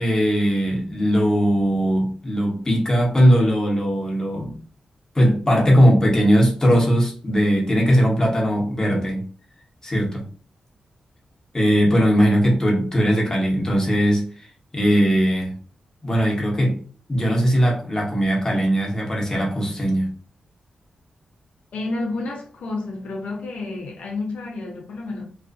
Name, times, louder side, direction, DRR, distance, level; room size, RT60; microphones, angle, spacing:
voice 1, 0.0-4.6 5.1-9.2 9.8-10.2 11.5-14.5 14.7-15.5 16.0-16.8 17.1-20.1, equal, 25° left, 1.0 m, -19 dB
voice 2, 21.7-25.3, left 2 dB, 80° left, 0.6 m, -30 dB
2.4 x 2.3 x 2.5 m
cardioid pair, 65°, 2 cm